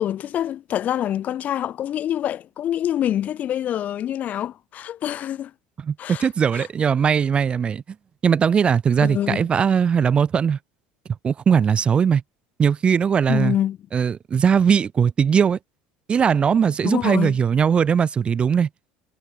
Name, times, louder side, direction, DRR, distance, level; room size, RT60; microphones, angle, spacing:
voice 1, 0.0-5.5 6.0-6.3 6.5-6.7 9.0-9.5 13.3-13.8 16.8-17.4, left 11 dB, 40° left, 0.8 m, -26 dB
voice 2, 5.8-7.8 8.2-10.6 11.2-12.2 12.6-13.5 13.9-15.6 16.1-18.7, right 7 dB, 25° right, 0.4 m, -19 dB
supercardioid pair, 110°, 4 cm